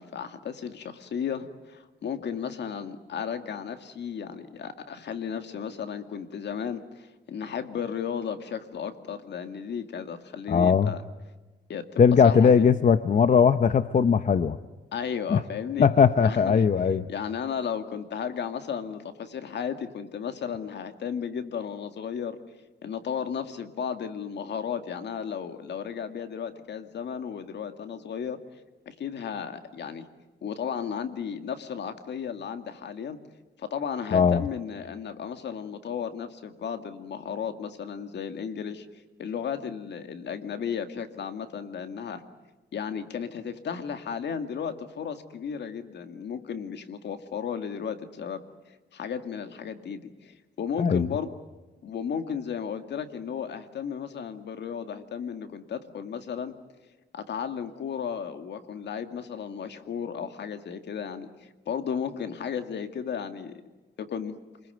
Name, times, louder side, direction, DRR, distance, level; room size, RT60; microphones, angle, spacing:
voice 1, 0.0-11.0 11.7-12.7 14.9-15.9 16.2-16.6 17.1-22.4 22.8-28.4 28.9-30.1 30.4-33.2 33.6-42.2 42.7-48.4 48.7-51.3 51.8-56.6 57.1-63.5 64.0-64.3, left 7 dB, 70° left, 8 dB, 2.2 m, -34 dB
voice 2, 10.5-10.9 12.0-14.6 15.3-15.4 15.8-17.0 34.1-34.4 50.8-51.1, left 6 dB, 45° left, 12 dB, 0.8 m, -19 dB
28.0 x 21.0 x 9.3 m, 1.2 s
cardioid pair, 110°, 19 cm